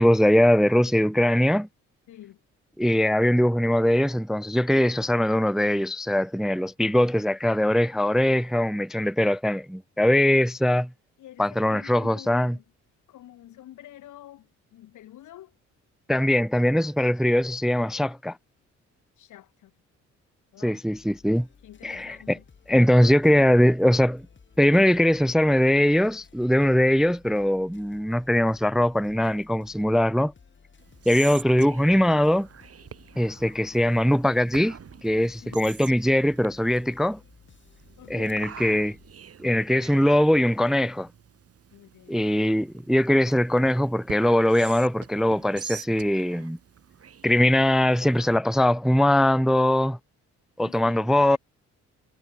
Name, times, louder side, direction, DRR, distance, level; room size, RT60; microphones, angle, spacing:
voice 1, 0.0-1.7 2.8-10.9 11.4-12.5 16.1-18.4 20.6-21.5 21.8-22.4 22.7-24.2 24.6-30.3 31.1-32.5 33.2-34.8 35.0-37.2 38.1-39.0 39.4-41.1 42.1-46.6 47.2-50.0 50.6-51.4, left 1 dB, ahead, 0.5 m, -21 dB
voice 2, 2.1-2.4 11.2-12.6 13.1-15.6 19.2-19.7 20.5-20.8 21.6-22.5 35.4-35.7 38.0-38.5 41.7-42.4 50.6-51.4, left 13 dB, 80° left, 4.6 m, -47 dB
sound 1, 20.9-39.1, left 5 dB, 40° left, 7.4 m, -55 dB
Whispering, 30.8-48.4, right 8 dB, 50° right, 3.9 m, -46 dB
cardioid pair, 90°, 30 cm